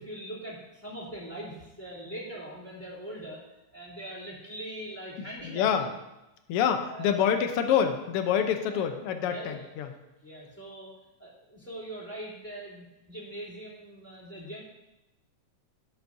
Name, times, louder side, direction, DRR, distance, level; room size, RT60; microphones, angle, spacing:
voice 1, 0.0-3.4 3.7-5.9 6.9-7.1 8.7-8.9 9.3-9.7 10.2-10.9 11.2-14.6, right 1 dB, 5° left, -7 dB, 3.2 m, -41 dB
voice 2, 5.2-5.9 6.5-9.9, left 8 dB, 75° left, 7 dB, 1.4 m, -27 dB
13.0 x 8.2 x 2.7 m, 0.96 s
omnidirectional pair, 3.3 m